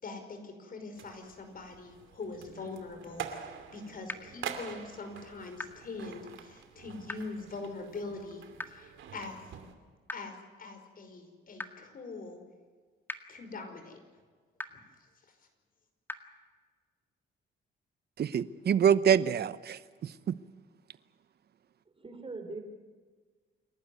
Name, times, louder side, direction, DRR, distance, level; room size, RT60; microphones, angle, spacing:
voice 1, 0.0-9.4 10.1-12.4 13.3-14.0 14.7-14.8 15.2-15.4, left 3 dB, 45° left, 5.4 m, -43 dB
sound 1, 1.0-9.7, right 8 dB, 80° right, 2.6 m, -46 dB
sound 2, 4.1-4.2 5.6-5.7 7.1-7.2 8.6-8.7 10.1-10.2 11.6-11.7 13.1-13.2 14.6-14.7 16.1-16.2, left 2 dB, 10° left, 1.9 m, -37 dB
voice 2, 18.2-20.3, right 8 dB, 55° right, 0.9 m, -26 dB
voice 3, 21.9-22.6, right 3 dB, 25° right, 4.2 m, -41 dB
28.5 x 12.0 x 9.6 m
cardioid pair, 90°, 20 cm